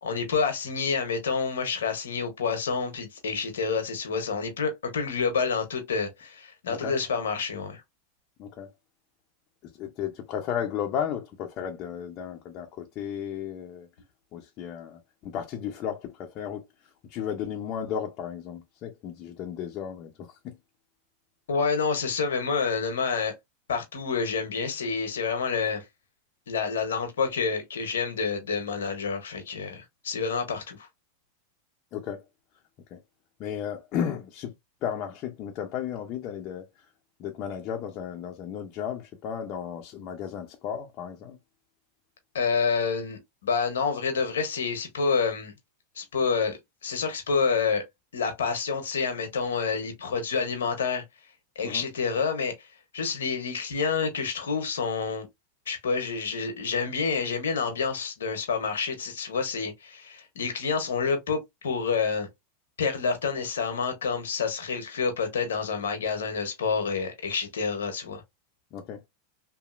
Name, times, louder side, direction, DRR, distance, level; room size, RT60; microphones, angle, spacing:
voice 1, 0.0-7.8 21.5-23.3 23.7-25.8 26.5-30.9 42.3-45.5 46.0-47.8 48.1-51.0 51.6-52.7 52.9-55.3 55.7-62.3 62.8-68.2, left 5 dB, 85° left, 0.8 m, -28 dB
voice 2, 9.6-13.9 14.3-20.6 31.9-32.2 32.9-33.0 33.4-34.5 34.8-36.7 37.2-41.4 51.6-51.9 68.7-69.1, left 8 dB, 45° left, 0.6 m, -34 dB
2.9 x 2.6 x 2.4 m
hypercardioid pair, 105°, 0 cm